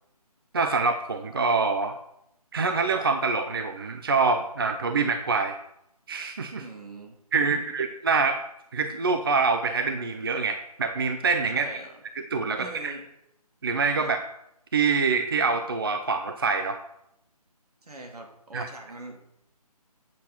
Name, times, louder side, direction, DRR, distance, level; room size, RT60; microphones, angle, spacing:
voice 1, 0.5-2.0 2.5-5.6 6.1-6.7 7.3-8.4 8.7-11.7 12.2-13.0 13.6-14.2 14.7-16.8 18.5-18.7, right 4 dB, 35° right, 7 dB, 0.5 m, -25 dB
voice 2, 6.6-7.7 11.5-11.9 12.6-13.0 14.0-14.1 17.8-19.2, right 2 dB, 70° right, 3 dB, 2.6 m, -42 dB
8.4 x 6.0 x 5.8 m, 0.78 s
figure-of-eight pair, 165°, 20 cm